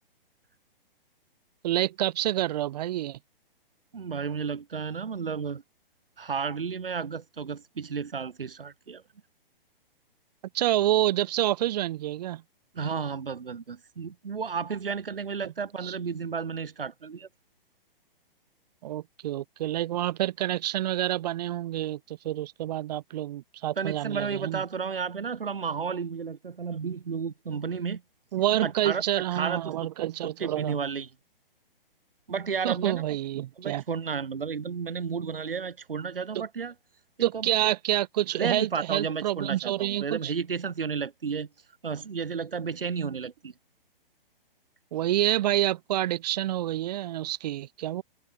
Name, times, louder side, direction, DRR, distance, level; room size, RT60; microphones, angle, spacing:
voice 1, 1.6-3.2 10.5-12.4 15.4-15.5 15.8-15.9 18.8-24.6 28.3-30.8 32.6-33.8 36.3-36.4 37.2-40.3 44.9-48.0, right 13 dB, 45° right, 2.7 m, -28 dB
voice 2, 3.9-5.6 6.2-9.0 12.7-17.3 23.8-28.0 28.6-29.0 29.3-29.9 30.2-31.1 32.3-33.0 33.6-36.7 37.2-37.5 38.4-41.5 41.8-43.5, right 6 dB, 70° right, 3.1 m, -32 dB
figure-of-eight pair, 125°, 29 cm